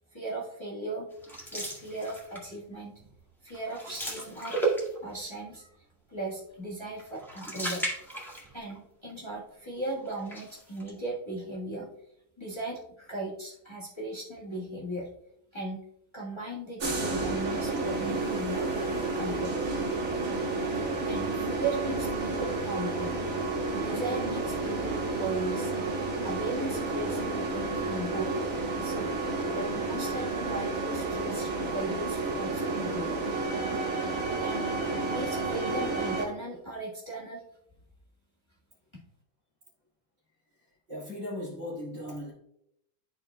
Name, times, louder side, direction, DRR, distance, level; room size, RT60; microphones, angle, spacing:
voice 1, 0.1-1.1 1.5-2.9 3.4-4.6 5.0-5.7 6.1-7.8 8.5-11.9 12.4-15.1 15.5-15.8 16.1-18.7 19.1-19.6 20.7-23.1 23.7-25.7 26.2-28.3 28.8-29.1 29.5-33.2 34.4-34.7 35.1-37.4, right 2 dB, 20° left, -6 dB, 1.5 m, -37 dB
sound 1, 1.2-2.6 3.0-3.2 3.5-5.2 7.0-8.8 9.1-9.2 10.0-10.9, right 2 dB, ahead, 1.6 m, -34 dB
sound 2, 16.8-36.3, right 3 dB, 65° right, 1.7 m, -31 dB
voice 2, 40.9-42.3, left 1 dB, 45° right, -12 dB, 2.4 m, -37 dB
12.5 x 4.5 x 2.2 m, 0.78 s
omnidirectional pair, 1.5 m